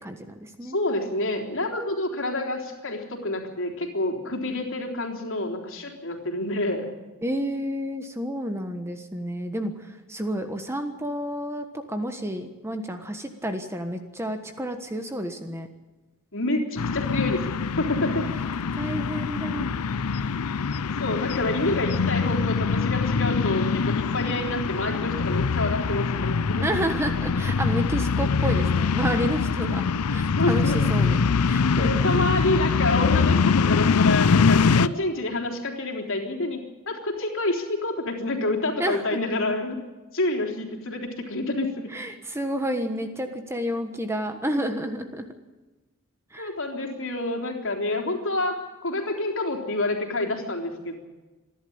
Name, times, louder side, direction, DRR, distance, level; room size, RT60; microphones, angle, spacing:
voice 1, 0.0-0.8 7.2-15.7 18.7-19.8 26.6-32.1 38.8-39.0 41.9-45.3 46.3-46.5, equal, 10° right, 6 dB, 1.3 m, -30 dB
voice 2, 0.6-6.9 16.3-18.3 21.0-26.6 30.3-30.8 31.8-39.8 40.1-41.9 46.4-51.0, left 2 dB, 60° left, 2 dB, 3.6 m, -28 dB
sound 1, 16.8-34.9, left 5 dB, 85° left, 0.6 m, -23 dB
27.5 x 11.5 x 8.8 m, 1.2 s
head